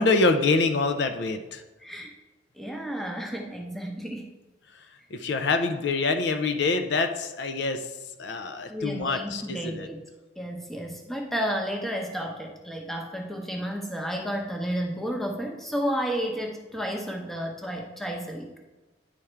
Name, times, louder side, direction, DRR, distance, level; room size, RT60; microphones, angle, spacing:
voice 1, 0.0-1.6 5.1-7.9 8.2-9.9, left 3 dB, 60° left, 7 dB, 0.5 m, -25 dB
voice 2, 1.8-2.1 2.6-4.3 8.7-10.0 10.4-18.6, equal, ahead, 1 dB, 0.7 m, -32 dB
9.8 x 3.5 x 4.4 m, 1.1 s
head